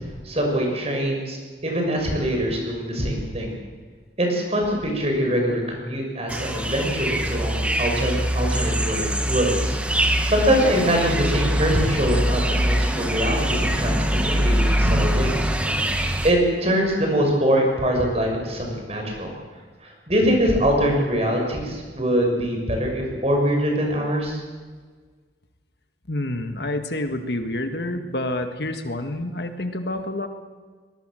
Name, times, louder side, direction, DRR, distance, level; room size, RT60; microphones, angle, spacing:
voice 1, 0.2-3.5 4.2-9.8 10.3-15.5 16.2-19.3 19.8-24.4, equal, 35° right, 1 dB, 6.4 m, -23 dB
sound 1, 6.3-16.3, equal, 5° right, 1.6 m, -23 dB
voice 2, 26.1-30.3, left 1 dB, 60° left, 7 dB, 1.8 m, -28 dB
23.0 x 21.0 x 7.7 m, 1.5 s
head